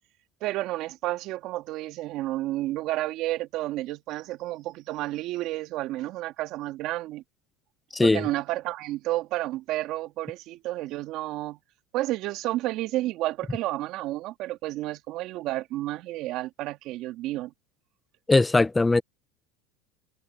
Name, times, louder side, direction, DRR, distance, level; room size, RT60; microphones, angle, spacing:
voice 1, 0.4-7.2 8.0-11.6 11.9-17.5, right 16 dB, 55° right, 1.9 m, -31 dB
voice 2, 7.9-8.3 18.3-19.0, left 3 dB, 10° left, 0.9 m, -20 dB
supercardioid pair, 115°, 0 cm